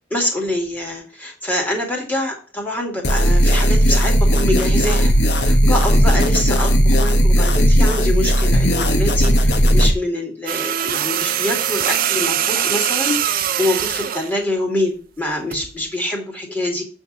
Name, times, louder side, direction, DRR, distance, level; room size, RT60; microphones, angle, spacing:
voice 1, 0.1-16.8, left 1 dB, 10° left, -1 dB, 2.6 m, -25 dB
sound 1, 3.0-9.9, equal, 70° left, 1.2 m, -15 dB
sound 2, 10.5-14.3 15.5-15.7, right 10 dB, 50° right, 0.6 m, -22 dB
8.6 x 3.6 x 6.7 m, 0.37 s
head